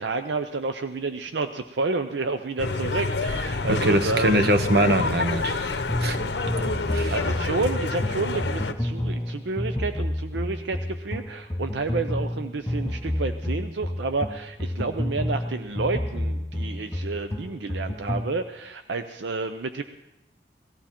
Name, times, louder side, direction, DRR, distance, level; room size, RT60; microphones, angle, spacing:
voice 1, 0.0-4.4 6.5-19.8, right 3 dB, 80° right, 8 dB, 0.6 m, -30 dB
sound 1, 2.6-8.7, left 3 dB, 70° left, 0.8 m, -28 dB
voice 2, 3.7-6.2 6.9-7.1, right 1 dB, 60° right, 10 dB, 0.9 m, -23 dB
sound 2, 5.9-18.3, left 1 dB, 15° left, 0.8 m, -30 dB
18.0 x 13.5 x 4.4 m, 0.91 s
head